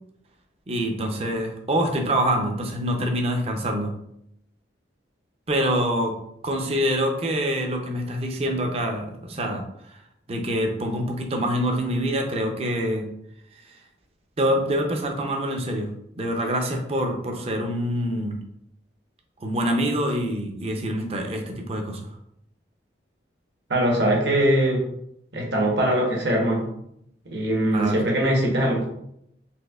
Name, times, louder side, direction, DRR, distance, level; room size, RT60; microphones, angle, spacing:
voice 1, 0.7-4.0 5.5-6.1 6.4-9.6 10.3-13.1 14.4-15.9 16.2-18.4 19.4-22.0 27.7-28.0, equal, 35° right, 3 dB, 0.5 m, -25 dB
voice 2, 23.7-24.8 25.3-26.6 27.3-28.9, right 1 dB, 65° right, -1 dB, 0.9 m, -21 dB
4.1 x 2.7 x 2.3 m, 0.76 s
head